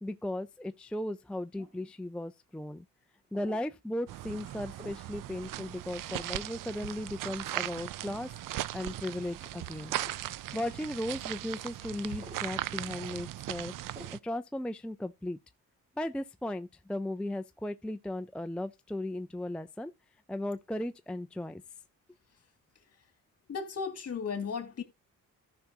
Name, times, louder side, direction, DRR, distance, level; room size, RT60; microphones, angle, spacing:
voice 1, 0.0-2.9 3.3-8.3 8.7-10.0 10.5-13.7 14.1-15.4 16.0-19.9 20.3-21.6, left 1 dB, 5° left, 0.4 m, -36 dB
sound 1, 1.6-1.9 3.3-3.7 4.8-5.1 6.1-6.4 7.2-7.4 8.1-8.3 9.4-9.6 10.0-10.2 11.4-11.6 12.2-12.5 13.9-14.2, equal, 20° right, 2.0 m, -51 dB
sound 2, 4.1-14.2, right 14 dB, 80° right, 0.5 m, -38 dB
voice 2, 23.5-24.8, left 5 dB, 50° left, 2.1 m, -35 dB
14.5 x 5.9 x 2.8 m
cardioid pair, 95°, 32 cm